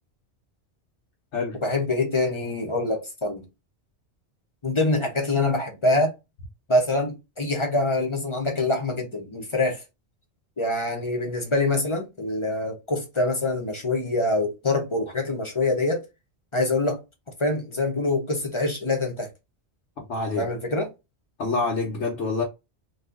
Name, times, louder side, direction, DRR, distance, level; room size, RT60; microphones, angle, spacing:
voice 1, 1.6-3.4 4.6-6.1 6.7-9.8 10.6-16.0 16.5-17.0 17.4-19.3 20.4-20.9, left 2 dB, 30° left, 0.7 m, -25 dB
voice 2, 20.0-20.4 21.4-22.4, left 3 dB, 85° left, 1.2 m, -26 dB
2.7 x 2.4 x 3.5 m
omnidirectional pair, 1.2 m